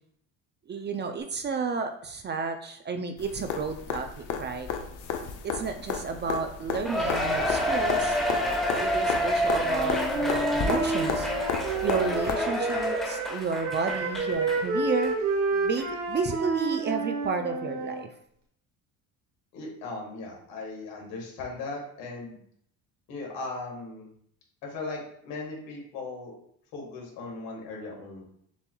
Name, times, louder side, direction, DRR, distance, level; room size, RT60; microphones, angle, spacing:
voice 1, 0.7-4.7 5.4-8.2 8.7-11.3 11.8-15.1 15.5-18.1, right 5 dB, 30° right, 6 dB, 0.4 m, -32 dB
sound 1, 3.2-12.3 14.3-14.4, left 6 dB, 60° left, 0.7 m, -33 dB
Cheering, 6.8-14.6 15.0-15.1 15.8-15.9, equal, ahead, 1.2 m, -28 dB
Wind instrument woodwind instrument, 9.6-13.3 13.6-18.0, right 3 dB, 75° right, 1.3 m, -30 dB
voice 2, 19.5-22.4 23.1-24.1 24.6-26.3 26.7-28.2, left 3 dB, 80° left, -1 dB, 1.8 m, -38 dB
7.0 x 2.9 x 2.3 m, 0.68 s
supercardioid pair, 95°, 35 cm